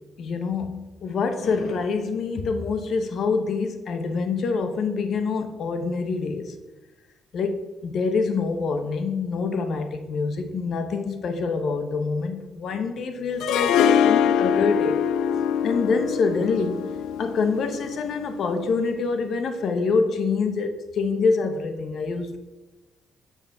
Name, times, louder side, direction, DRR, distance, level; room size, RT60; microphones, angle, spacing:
voice 1, 0.2-6.6 7.3-15.0 15.6-16.8 17.2-22.4, left 4 dB, 65° left, 7 dB, 0.8 m, -26 dB
Harp, 13.4-18.5, left 8 dB, 90° left, 0.3 m, -23 dB
7.3 x 7.1 x 3.5 m, 1.1 s
cardioid pair, 90°, 0 cm